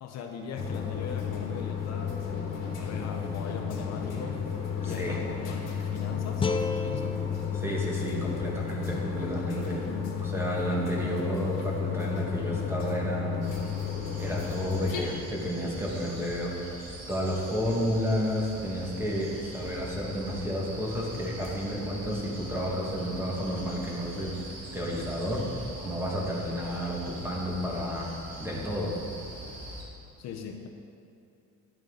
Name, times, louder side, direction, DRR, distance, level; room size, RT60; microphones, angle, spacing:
voice 1, 0.0-2.2 2.5-4.4 4.8-5.6 5.9-6.5 6.8-7.2 9.8-10.3 30.2-30.7, left 6 dB, 60° left, 3 dB, 0.7 m, -39 dB
sound 1, 0.6-15.0, left 7 dB, 85° left, 1.4 m, -33 dB
voice 2, 4.8-5.2 7.6-9.8 10.2-13.5 14.2-16.7 17.1-24.4 24.7-28.1 28.4-28.9, equal, 10° right, -3 dB, 1.4 m, -31 dB
sound 2, 6.4-9.5, left 3 dB, 20° left, 0.3 m, -35 dB
sound 3, 13.4-29.8, right 1 dB, 55° right, 1.7 m, -43 dB
10.5 x 6.6 x 3.7 m, 2.6 s
cardioid pair, 150°, 31 cm